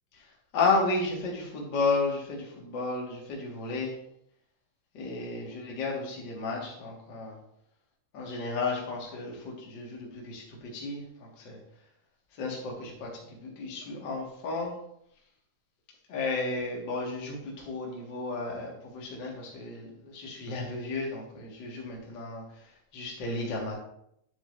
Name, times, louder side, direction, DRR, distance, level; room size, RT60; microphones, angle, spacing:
voice 1, 0.5-3.9 4.9-7.4 8.1-11.6 12.4-13.1 13.4-14.7 16.1-22.4 22.9-23.8, left 3 dB, 40° left, -3 dB, 2.0 m, -32 dB
9.8 x 7.3 x 2.6 m, 0.73 s
omnidirectional pair, 3.8 m